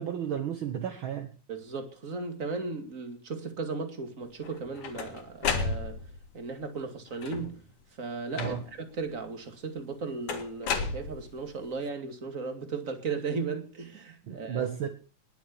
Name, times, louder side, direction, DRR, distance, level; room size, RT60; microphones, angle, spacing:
voice 1, 0.0-1.3 8.4-8.6 14.2-14.9, right 9 dB, 55° right, 1.4 m, -33 dB
voice 2, 1.5-6.1 6.3-7.6 8.0-14.9, right 4 dB, 25° right, 2.3 m, -36 dB
sound 1, 4.4-6.3 7.1-7.7 8.4-8.9 10.3-11.6, left 5 dB, 70° left, 3.2 m, -33 dB
20.5 x 7.2 x 7.0 m
omnidirectional pair, 3.7 m